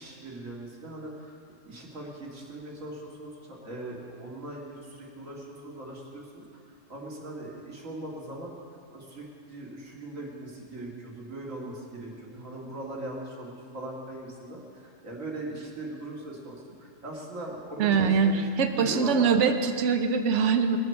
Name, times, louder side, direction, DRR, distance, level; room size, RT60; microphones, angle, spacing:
voice 1, 0.0-1.4 1.6-8.5 8.9-19.4, right 1 dB, 90° right, -3 dB, 2.4 m, -40 dB
voice 2, 17.8-20.8, right 6 dB, 70° right, 7 dB, 1.2 m, -23 dB
20.5 x 7.8 x 6.5 m, 2.3 s
omnidirectional pair, 1.3 m